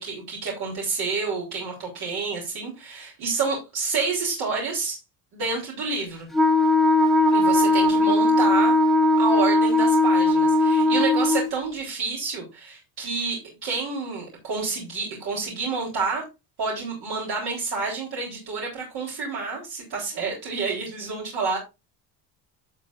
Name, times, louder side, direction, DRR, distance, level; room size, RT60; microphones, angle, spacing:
voice 1, 0.0-5.0 5.3-6.3 7.3-8.8 9.2-16.2 16.6-21.6, right 4 dB, 60° right, -2 dB, 3.5 m, -29 dB
Wind instrument woodwind instrument, 6.3-11.5, left 1 dB, ahead, 1.2 m, -19 dB
11.5 x 6.5 x 2.5 m, 0.25 s
cardioid pair, 120°, 43 cm